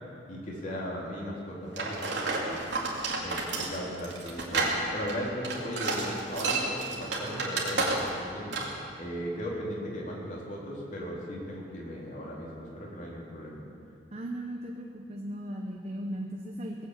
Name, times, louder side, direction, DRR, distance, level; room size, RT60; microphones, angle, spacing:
voice 1, 0.3-2.6 3.2-13.6, equal, 45° left, -4 dB, 3.4 m, -37 dB
sound 1, 1.8-8.3 8.5-8.8, right 3 dB, 80° right, 2.7 m, -31 dB
voice 2, 14.1-16.9, right 1 dB, 35° right, 0 dB, 1.0 m, -37 dB
19.5 x 8.0 x 8.1 m, 2.6 s
head